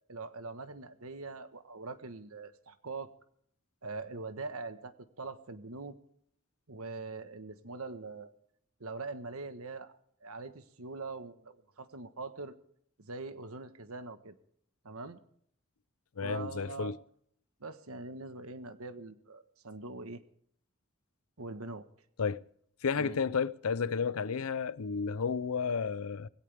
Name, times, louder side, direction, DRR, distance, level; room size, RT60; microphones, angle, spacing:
voice 1, 0.0-3.1 3.8-6.0 6.7-8.3 8.8-9.9 10.2-12.5 13.0-14.4 14.8-15.2 16.2-17.0 17.6-20.2 21.4-21.9 23.0-23.2, right 3 dB, 85° right, 1.3 m, -43 dB
voice 2, 16.2-17.0 22.2-22.4 22.8-26.3, left 5 dB, 85° left, 0.6 m, -32 dB
19.0 x 17.0 x 3.5 m
head